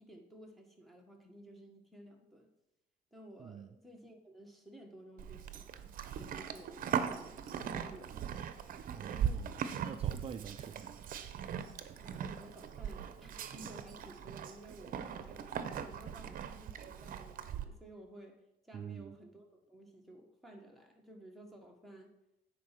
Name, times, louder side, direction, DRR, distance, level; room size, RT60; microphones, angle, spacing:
voice 1, 0.0-2.5 3.1-8.2 12.0-18.4 18.6-22.1, right 1 dB, ahead, 0 dB, 1.7 m, -55 dB
voice 2, 3.4-3.7 8.9-11.1 18.7-19.1, right 8 dB, 35° right, 8 dB, 0.4 m, -46 dB
Livestock farm animals working animals, 5.2-17.6, right 8 dB, 55° right, 0.8 m, -40 dB
9.3 x 4.6 x 5.9 m, 0.87 s
cardioid pair, 110°, 17 cm